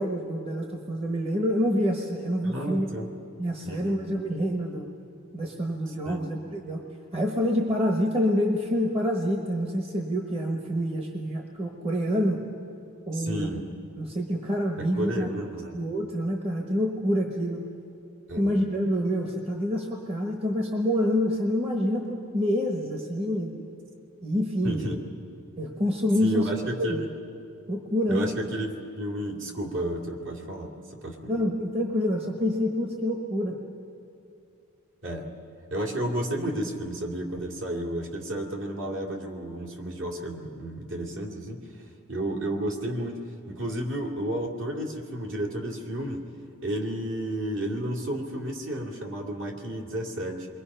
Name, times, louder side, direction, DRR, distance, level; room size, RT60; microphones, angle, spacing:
voice 1, 0.0-2.9 3.4-4.9 5.3-6.8 7.1-12.4 13.1-13.5 14.0-15.3 15.7-17.6 18.4-23.6 24.2-25.0 25.6-26.5 26.8-27.0 27.7-28.3 31.3-33.6, equal, 25° right, 2 dB, 1.2 m, -27 dB
voice 2, 2.4-3.1 3.6-4.0 5.9-6.2 13.1-13.6 14.8-15.8 18.3-18.6 24.6-25.0 26.2-27.1 28.1-30.7 31.0-31.5 35.0-35.3 35.7-41.6 42.1-43.2 43.5-46.2 46.6-50.5, right 1 dB, 60° right, -1 dB, 2.7 m, -32 dB
28.0 x 22.5 x 5.6 m, 2.6 s
head